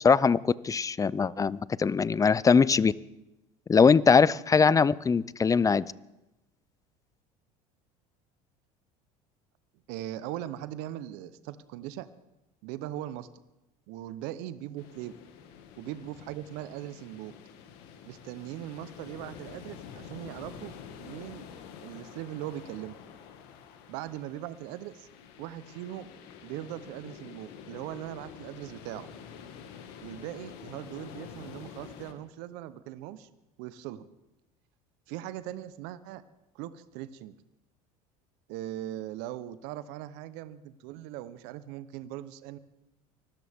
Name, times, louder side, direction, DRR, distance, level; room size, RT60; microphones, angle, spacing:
voice 1, 0.0-2.9 3.7-5.9, left 5 dB, 20° left, 21 dB, 0.5 m, -22 dB
voice 2, 9.9-12.1 12.6-13.3 13.9-15.1 15.8-17.4 18.1-20.7 21.0-21.4 21.8-23.0 23.9-25.1 25.4-26.1 26.4-29.1 30.0-33.3 33.6-34.1 35.1-36.2 36.5-37.4 38.5-42.6, right 13 dB, 70° right, 14 dB, 0.9 m, -40 dB
sound 1, 14.8-32.1, left 7 dB, 70° left, 1.9 m, -48 dB
24.5 x 13.0 x 3.6 m, 0.93 s
hypercardioid pair, 85°, 18 cm